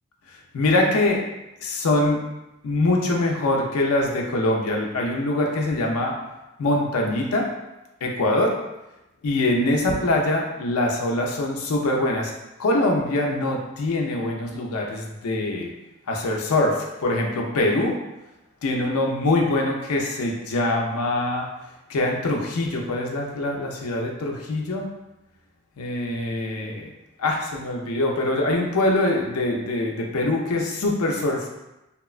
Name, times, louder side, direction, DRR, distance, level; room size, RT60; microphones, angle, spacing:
voice 1, 0.5-1.2 1.6-2.2 2.6-6.2 6.6-7.5 8.0-8.5 9.2-12.3 12.6-15.7 16.1-18.0 18.6-21.5 21.9-24.9 25.8-26.9 27.2-31.5, left 2 dB, 80° left, 0 dB, 0.4 m, -23 dB
2.9 x 2.1 x 2.3 m, 0.96 s
head